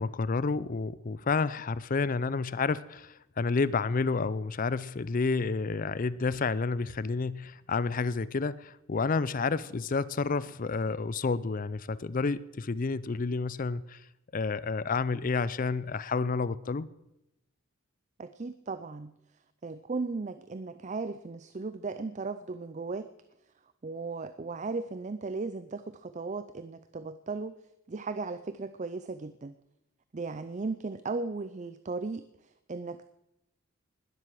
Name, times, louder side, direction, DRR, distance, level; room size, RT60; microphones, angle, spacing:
voice 1, 0.0-14.0 14.3-16.9, left 4 dB, 40° left, 0.4 m, -30 dB
voice 2, 18.2-19.1 19.6-23.1 23.8-27.6 27.9-29.6 30.1-32.2 32.7-33.1, right 3 dB, 35° right, 0.5 m, -36 dB
20.0 x 7.9 x 7.6 m
head